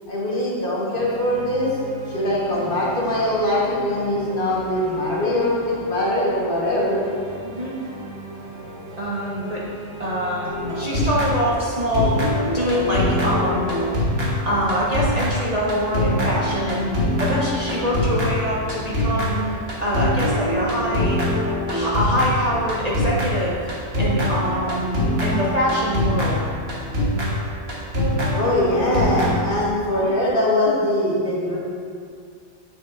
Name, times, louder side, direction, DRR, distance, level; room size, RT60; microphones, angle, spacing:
voice 1, 0.1-1.7 2.1-7.0 28.3-31.6, left 1 dB, 45° left, -6 dB, 1.3 m, -22 dB
sound 1, 0.9-14.3, right 1 dB, 85° right, 1.5 m, -38 dB
voice 2, 9.0-9.6 10.0-13.8 14.5-16.9 17.2-19.4 19.8-21.2 21.7-23.7 24.0-26.5, equal, 35° right, -6 dB, 0.8 m, -24 dB
sound 2, 10.4-11.7 11.9-29.7, left 1 dB, 50° right, 1.5 m, -24 dB
8.1 x 6.4 x 2.5 m, 2.2 s
omnidirectional pair, 1.3 m